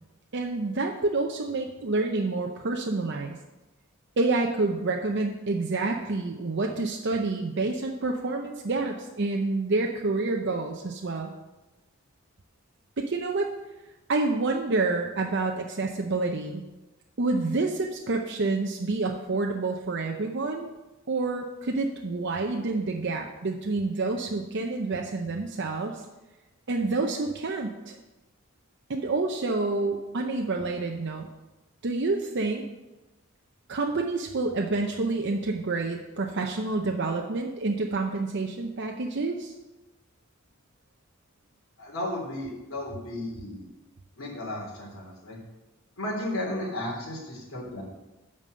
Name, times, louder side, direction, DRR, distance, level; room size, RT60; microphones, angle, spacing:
voice 1, 0.3-3.4 4.2-11.3 13.0-13.5 14.1-16.6 17.2-20.7 21.1-26.0 26.7-28.0 28.9-31.3 31.8-32.6 33.7-39.5, right 3 dB, 55° right, 1 dB, 0.7 m, -28 dB
voice 2, 41.8-43.7 44.2-45.4 46.0-47.8, left 1 dB, 75° left, -3 dB, 3.2 m, -34 dB
8.8 x 5.3 x 6.5 m, 1.1 s
head